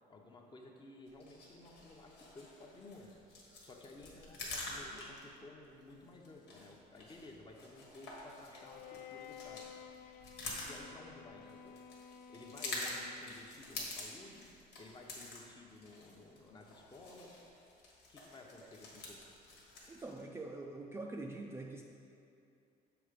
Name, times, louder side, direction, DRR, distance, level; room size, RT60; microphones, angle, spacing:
voice 1, 0.1-3.1 3.6-9.6 10.6-11.8 12.3-17.4 18.1-19.2, left 2 dB, 25° left, 1 dB, 0.8 m, -55 dB
sound 1, 1.1-20.2, left 2 dB, 85° left, 1.5 m, -48 dB
Bowed string instrument, 8.5-13.6, left 7 dB, 60° left, 0.4 m, -53 dB
voice 2, 19.9-21.8, right 2 dB, 15° right, 0 dB, 0.4 m, -45 dB
6.9 x 3.8 x 5.1 m, 2.6 s
cardioid pair, 110°, 17 cm